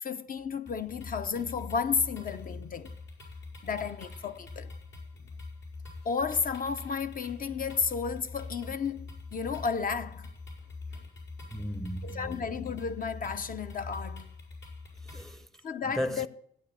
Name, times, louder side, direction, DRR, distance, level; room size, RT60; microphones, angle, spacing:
voice 1, 0.0-2.9 3.6-4.7 6.0-10.3 10.9-11.0 12.0-14.3 15.6-16.3, left 5 dB, 45° left, 1.0 m, -32 dB
sound 1, 0.7-15.3, left 3 dB, 70° left, 6.5 m, -44 dB
voice 2, 11.5-12.4 15.0-15.5 15.8-16.3, equal, ahead, 0.8 m, -35 dB
15.0 x 9.4 x 7.0 m
cardioid pair, 90°, 20 cm